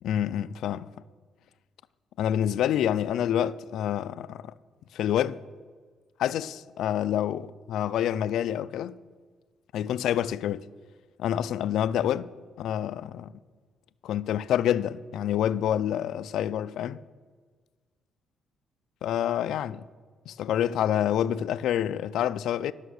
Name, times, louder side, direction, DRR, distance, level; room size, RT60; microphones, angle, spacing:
voice 1, 0.0-0.9 2.2-4.5 4.9-5.4 6.2-9.0 9.7-10.6 11.2-12.3 12.6-13.3 14.0-17.0 19.0-19.9 20.3-22.7, left 10 dB, 80° left, 0.3 m, -27 dB
11.5 x 6.3 x 6.4 m
cardioid pair, 90°, 0 cm